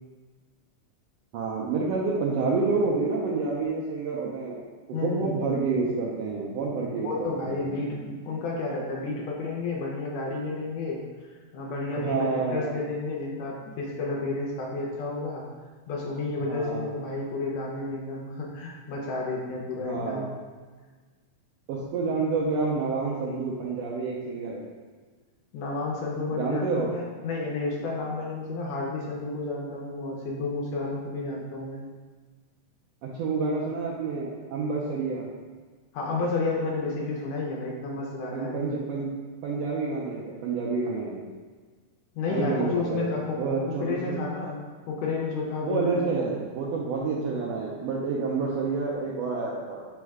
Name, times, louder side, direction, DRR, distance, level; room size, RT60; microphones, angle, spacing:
voice 1, 1.3-4.6 5.0-7.6 11.9-12.8 16.5-16.9 19.8-20.3 21.7-24.7 26.3-26.9 33.0-35.3 38.3-39.1 39.4-41.2 42.3-43.1 43.4-44.2 45.6-49.9, right 4 dB, 85° right, -4 dB, 1.4 m, -28 dB
voice 2, 4.9-5.3 7.0-11.0 11.5-15.4 15.9-20.3 25.5-31.8 35.9-38.7 42.1-43.4 43.7-46.4, left 3 dB, 75° left, -2 dB, 1.7 m, -31 dB
4.7 x 2.1 x 4.6 m, 1.4 s
omnidirectional pair, 3.4 m